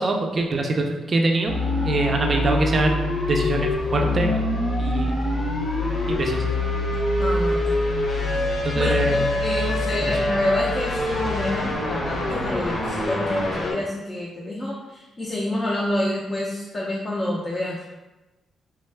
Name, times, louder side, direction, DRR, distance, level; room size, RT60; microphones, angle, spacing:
voice 1, 0.0-1.6 1.8-4.4 4.8-5.2 6.1-6.5 8.6-9.3 10.0-10.2, right 2 dB, 35° right, 2 dB, 0.4 m, -24 dB
sound 1, 1.5-13.7, left 1 dB, 50° left, 0.8 m, -24 dB
voice 2, 7.2-7.7 8.7-17.8, left 1 dB, 25° left, -4 dB, 0.5 m, -28 dB
3.4 x 2.2 x 3.2 m, 1.1 s
cardioid pair, 135°, 0 cm